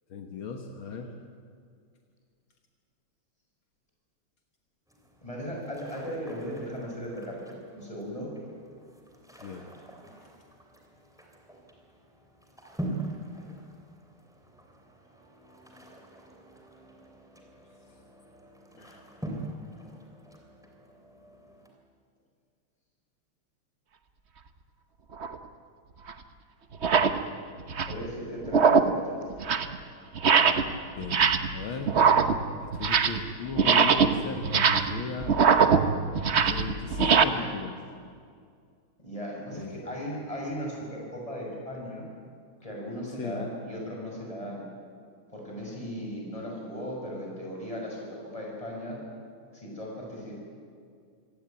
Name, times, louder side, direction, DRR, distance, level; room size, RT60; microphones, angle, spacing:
voice 1, 0.1-1.1 9.4-9.6 18.8-19.0 30.9-31.2 31.5-32.0 32.6-35.4 36.4-37.8 39.6-40.0 43.2-43.5, left 5 dB, 70° left, 3 dB, 2.1 m, -36 dB
sound 1, 4.9-21.7, right 1 dB, ahead, 3.0 m, -44 dB
voice 2, 5.2-8.3 27.9-29.2 39.0-42.1 42.6-44.6 45.3-49.0 49.5-50.4, equal, 15° left, -2 dB, 6.5 m, -37 dB
sound 2, 25.2-25.4 26.1-26.2 26.7-27.2 27.6-28.0 28.4-29.0 29.3-29.8 30.2-30.7 31.0-31.6 31.9-33.3 33.5-37.2, right 6 dB, 50° right, 0.8 m, -22 dB
25.0 x 17.0 x 9.0 m, 2.2 s
omnidirectional pair, 2.4 m